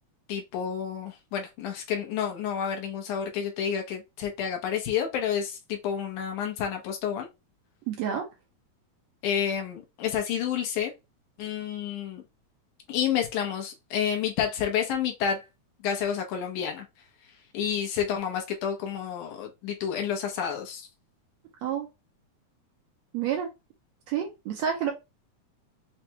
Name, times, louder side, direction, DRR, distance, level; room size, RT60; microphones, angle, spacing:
voice 1, 0.3-7.3 9.2-10.9 11.4-12.2 12.9-15.4 15.8-16.9 17.5-20.9, left 8 dB, 80° left, 2.4 m, -29 dB
voice 2, 7.9-8.3 21.6-21.9 23.1-23.5 24.1-24.9, right 8 dB, 75° right, 1.7 m, -29 dB
6.5 x 2.3 x 2.8 m
omnidirectional pair, 3.6 m